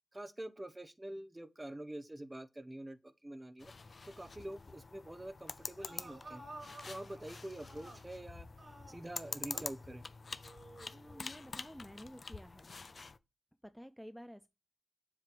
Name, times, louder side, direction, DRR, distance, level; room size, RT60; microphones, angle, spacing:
voice 1, 0.1-3.7 4.0-6.4 6.8-8.5 8.9-10.0, right 1 dB, 25° right, 0.9 m, -46 dB
sound 1, 3.6-13.2, left 4 dB, 65° left, 0.5 m, -47 dB
sound 2, 5.6-8.2 8.6-9.8 10.4-11.4, right 2 dB, 55° right, 4.3 m, -53 dB
voice 2, 10.9-12.7 13.6-14.5, equal, ahead, 0.5 m, -51 dB
7.4 x 3.3 x 5.9 m
wide cardioid pair, 65°, 0 cm